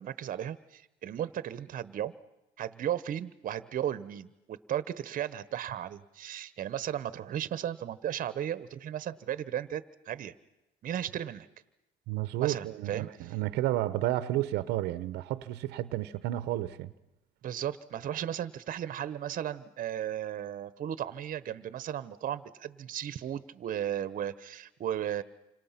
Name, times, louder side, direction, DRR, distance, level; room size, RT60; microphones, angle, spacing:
voice 1, 0.0-2.1 2.6-10.3 10.8-11.5 12.4-13.1 17.4-25.2, right 10 dB, 55° right, 1.1 m, -35 dB
voice 2, 12.1-16.9, right 15 dB, 85° right, 0.9 m, -31 dB
29.0 x 26.0 x 5.9 m
cardioid pair, 110°, 17 cm